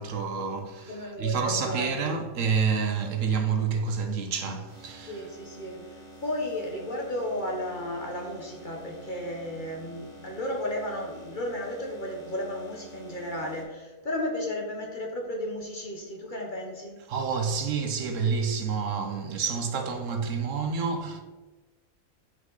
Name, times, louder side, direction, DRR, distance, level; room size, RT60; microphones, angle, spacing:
voice 1, 0.0-5.3 17.1-21.2, right 5 dB, 65° right, 1.0 m, -28 dB
voice 2, 0.9-1.9 5.0-17.0, left 1 dB, 40° left, 0.9 m, -34 dB
sound 1, 4.7-13.6, right 1 dB, 20° left, 2.4 m, -49 dB
5.9 x 5.5 x 3.9 m
omnidirectional pair, 1.5 m